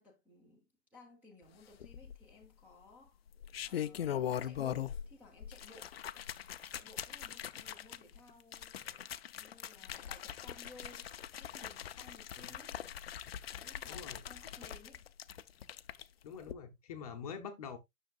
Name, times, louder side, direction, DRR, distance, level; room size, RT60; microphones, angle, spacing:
voice 1, 0.0-3.2 3.6-5.9 6.7-12.8 13.5-15.0, left 2 dB, 5° right, 0.8 m, -58 dB
sound 1, 1.8-2.5 3.3-5.1 5.4-16.0 16.4-16.5, left 10 dB, 50° left, 0.5 m, -41 dB
voice 2, 13.9-14.2 16.2-17.8, left 6 dB, 25° left, 0.8 m, -45 dB
9.2 x 6.5 x 2.4 m
hypercardioid pair, 160°, 41 cm